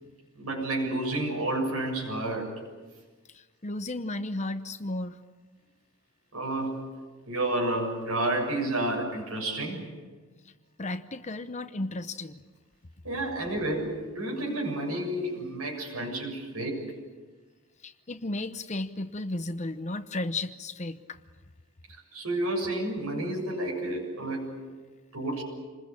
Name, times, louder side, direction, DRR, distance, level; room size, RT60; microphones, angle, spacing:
voice 1, 0.4-2.6 6.3-6.8 7.3-9.9 13.0-16.9 22.1-24.5 25.1-25.4, right 1 dB, 80° right, -2 dB, 7.4 m, -30 dB
voice 2, 3.3-5.2 10.8-12.4 17.8-21.2, left 2 dB, 30° left, 10 dB, 0.9 m, -34 dB
27.5 x 21.0 x 8.7 m, 1.4 s
head